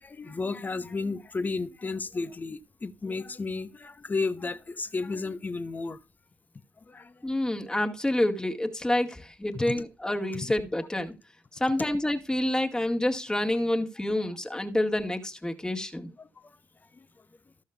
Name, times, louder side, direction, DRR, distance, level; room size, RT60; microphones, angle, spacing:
voice 1, 0.0-6.0 6.9-7.2 9.5-9.8 16.2-16.3, left 3 dB, 25° left, 1.0 m, -33 dB
voice 2, 7.2-11.1 11.6-16.1, left 1 dB, 10° left, 2.0 m, -28 dB
14.0 x 6.4 x 3.4 m
figure-of-eight pair, 45°, 7 cm